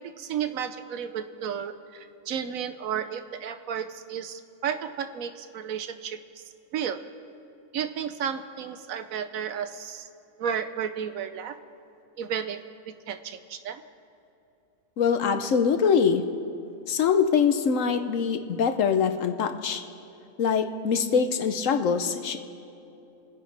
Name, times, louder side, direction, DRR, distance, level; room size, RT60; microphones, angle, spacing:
voice 1, 0.2-6.4 6.7-7.0 7.7-10.1 10.4-11.6 12.2-12.6 12.9-13.8, right 8 dB, 75° right, 10 dB, 1.1 m, -33 dB
voice 2, 15.0-16.2 16.9-19.8 20.4-22.4, left 6 dB, 65° left, 8 dB, 1.1 m, -23 dB
30.0 x 10.5 x 3.3 m, 2.8 s
omnidirectional pair, 1.5 m